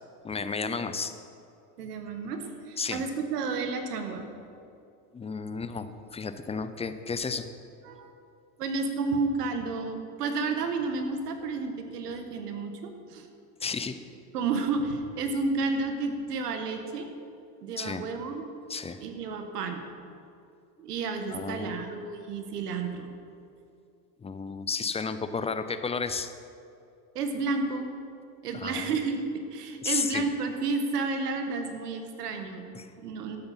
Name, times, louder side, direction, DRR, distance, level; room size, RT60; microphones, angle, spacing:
voice 1, 0.2-1.1 2.8-3.0 5.1-7.5 13.6-14.0 17.8-18.0 18.7-19.0 21.3-21.8 24.2-26.3 28.5-29.0 29.8-30.2 32.7-32.9, left 5 dB, 15° left, 10 dB, 0.6 m, -32 dB
voice 2, 1.8-4.3 7.8-8.1 8.6-13.3 14.3-17.1 17.6-18.4 19.0-19.8 20.8-23.1 27.1-27.9 28.4-29.2 29.5-33.4, right 4 dB, 85° right, 6 dB, 1.6 m, -31 dB
12.5 x 8.6 x 5.7 m, 2.5 s
hypercardioid pair, 100°, 46 cm